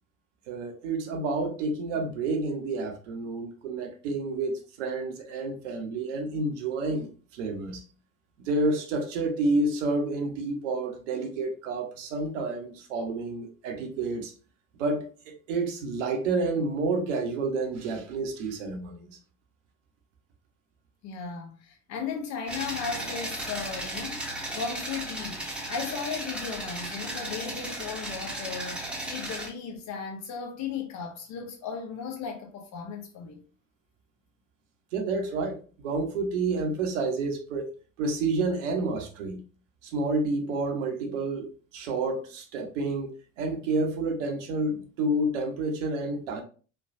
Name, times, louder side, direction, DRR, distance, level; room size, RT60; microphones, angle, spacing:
voice 1, 0.5-7.8 8.4-14.3 14.8-19.1 34.9-37.7 38.0-39.4 39.8-46.4, right 3 dB, 65° right, 0.7 m, -29 dB
voice 2, 21.0-24.2 24.5-33.4, left 6 dB, 45° left, 0.9 m, -36 dB
sound 1, 22.5-29.5, right 1 dB, 5° right, 0.8 m, -35 dB
3.1 x 2.2 x 2.5 m
figure-of-eight pair, 60°, 38 cm